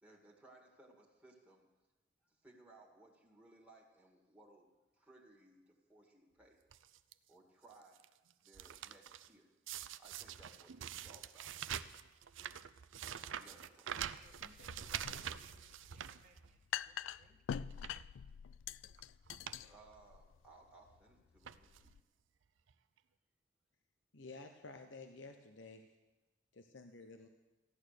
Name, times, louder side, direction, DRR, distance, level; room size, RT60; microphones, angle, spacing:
voice 1, 0.0-1.7 2.2-4.7 4.9-6.6 7.3-8.0 8.4-9.5 10.0-11.5 13.0-13.9 19.6-21.9, right 2 dB, 10° right, -2 dB, 1.9 m, -62 dB
sound 1, 6.7-7.1 7.7-9.3 9.7-16.8 17.2-17.3 17.7-18.1 18.9-19.0 19.3-19.6 19.9-20.0 20.9-21.1 21.4-21.9 22.7-22.8 23.0-23.1, right 9 dB, 80° right, 0.5 m, -46 dB
voice 2, 14.0-16.6 17.0-17.4, right 2 dB, 40° right, 1 dB, 1.5 m, -66 dB
sound 2, 14.2-22.0, left 8 dB, 85° left, 0.4 m, -46 dB
voice 3, 24.1-25.9 26.5-27.3, left 3 dB, 70° left, 5 dB, 0.9 m, -52 dB
15.0 x 11.0 x 6.5 m, 1.1 s
head